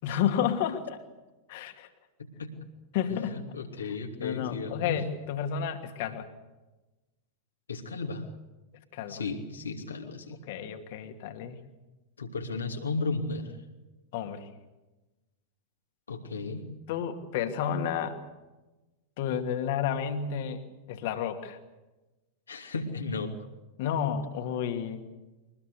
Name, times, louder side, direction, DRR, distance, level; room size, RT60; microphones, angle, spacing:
voice 1, 0.0-1.0 1.5-1.9 2.9-3.4 3.8-3.9 4.2-6.3 8.9-9.2 10.5-11.6 14.1-14.5 16.9-18.2 19.2-20.6 20.9-21.6 23.8-25.0, left 8 dB, 50° left, 7 dB, 2.5 m, -31 dB
voice 2, 2.2-2.5 3.1-5.0 7.7-8.3 9.1-10.4 12.2-13.5 16.1-16.6 22.5-23.4, left 3 dB, 75° left, 3 dB, 2.8 m, -35 dB
23.5 x 20.5 x 8.2 m, 1.1 s
figure-of-eight pair, 90°, 0 cm